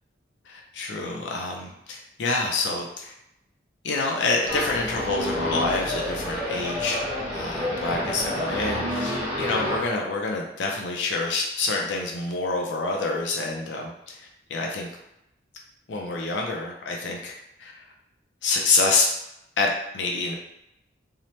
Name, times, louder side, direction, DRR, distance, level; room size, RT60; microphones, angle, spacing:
voice 1, 0.5-3.1 3.8-7.0 7.3-14.9 15.9-17.3 17.6-17.8 18.4-19.1 19.6-20.4, left 3 dB, 80° left, 0 dB, 0.4 m, -27 dB
sound 1, 4.4-9.8, equal, 25° right, 1.1 m, -29 dB
2.8 x 2.1 x 3.0 m, 0.83 s
head